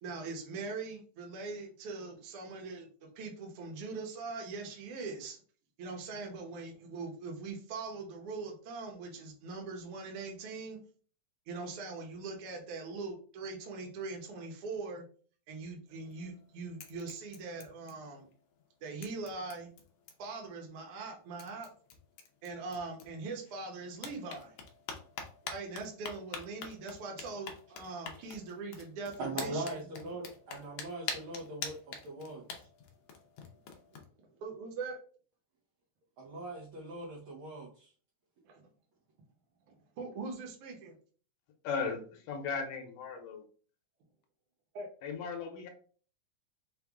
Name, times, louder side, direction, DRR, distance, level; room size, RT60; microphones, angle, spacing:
voice 1, 0.0-5.4 5.8-10.8 11.5-15.0 15.5-18.3 18.8-19.7 20.2-21.7 22.4-24.6 25.4-29.9 33.4-33.5 33.9-34.0 34.3-35.0 38.4-38.7 39.7-40.9 44.7-44.9, right 3 dB, 60° right, 1 dB, 1.5 m, -42 dB
sound 1, 15.9-16.4 16.8-18.3 18.6-18.7 19.0-20.4 21.1-21.2 21.4-23.5 23.9-34.0, left 5 dB, 85° left, 1.3 m, -45 dB
voice 2, 29.2-32.7 36.2-37.9, right 2 dB, 85° right, -3 dB, 1.1 m, -41 dB
voice 3, 41.6-42.0 42.3-43.4 45.0-45.7, left 5 dB, 70° left, 4 dB, 1.7 m, -36 dB
5.4 x 2.2 x 3.5 m, 0.43 s
omnidirectional pair, 3.4 m